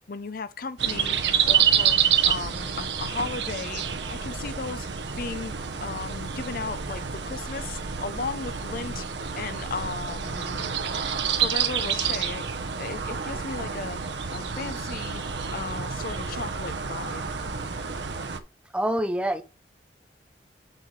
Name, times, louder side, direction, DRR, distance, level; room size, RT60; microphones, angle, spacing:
voice 1, 0.1-1.2 1.4-2.0 2.3-3.8 4.1-4.9 5.2-5.5 5.8-9.1 9.3-10.8 11.4-12.5 12.8-14.0 14.3-15.2 15.5-17.3, left 4 dB, 50° left, 0.6 m, -35 dB
sound 1, 0.8-18.4, right 7 dB, 80° right, 0.9 m, -28 dB
voice 2, 18.7-19.4, right 1 dB, 5° right, 0.6 m, -25 dB
7.7 x 6.4 x 3.2 m
head